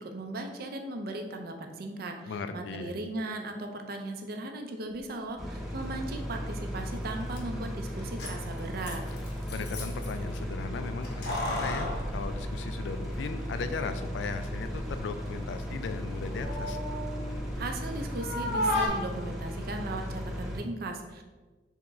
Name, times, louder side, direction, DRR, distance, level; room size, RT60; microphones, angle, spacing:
voice 1, 0.0-9.0 17.6-21.2, right 2 dB, 55° right, 5 dB, 0.5 m, -37 dB
voice 2, 2.3-2.9 9.5-16.8, left 4 dB, 80° left, 9 dB, 0.3 m, -37 dB
sound 1, 5.4-20.6, equal, ahead, 0.7 m, -36 dB
Keys jangling, 7.0-7.1 7.3-7.4 8.0-10.1 11.0-13.2 13.5-13.6 14.5-15.0 15.4-17.9 18.1-18.9, left 1 dB, 65° left, 0.8 m, -34 dB
3.7 x 3.4 x 3.0 m, 1.3 s
head